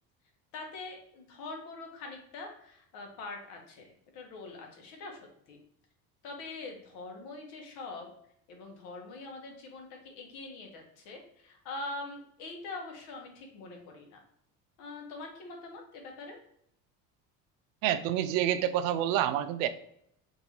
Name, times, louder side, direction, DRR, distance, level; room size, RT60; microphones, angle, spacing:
voice 1, 0.5-5.6 6.2-8.1 8.5-14.2 14.8-16.4, left 3 dB, 75° left, 2 dB, 1.3 m, -43 dB
voice 2, 17.8-19.7, right 11 dB, 80° right, 11 dB, 0.5 m, -28 dB
5.2 x 2.7 x 2.9 m, 0.71 s
cardioid pair, 155°, 33 cm